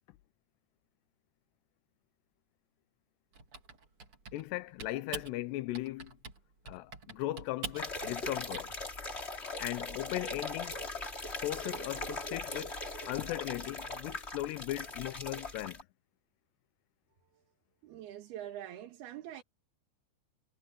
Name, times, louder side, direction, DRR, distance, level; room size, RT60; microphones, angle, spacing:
Typing, 3.3-4.5 4.8-5.3 5.7-6.4 6.7-8.7, right 4 dB, 35° right, 3.6 m, -44 dB
voice 1, 4.3-6.1 6.7-8.8 9.6-10.8 11.4-12.8 13.0-15.9, left 16 dB, 80° left, 2.8 m, -38 dB
sound 1, 7.8-15.8, left 2 dB, 20° left, 2.4 m, -40 dB
voice 2, 17.8-19.4, right 11 dB, 70° right, 3.7 m, -44 dB
omnidirectional pair, 4.9 m